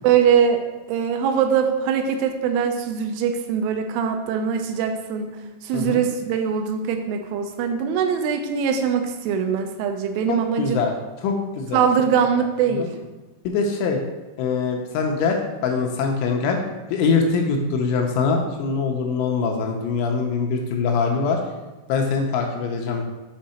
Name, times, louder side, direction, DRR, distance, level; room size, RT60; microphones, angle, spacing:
voice 1, 0.0-0.6 0.9-10.8 11.7-12.9, right 7 dB, 85° right, 6 dB, 3.1 m, -22 dB
voice 2, 10.3-10.9 11.2-11.8 12.4-12.5 12.7-12.9 13.4-14.0 14.4-16.6 16.9-21.4 21.9-23.0, left 5 dB, 80° left, 2 dB, 3.0 m, -23 dB
7.7 x 3.6 x 4.2 m, 1.2 s
omnidirectional pair, 5.6 m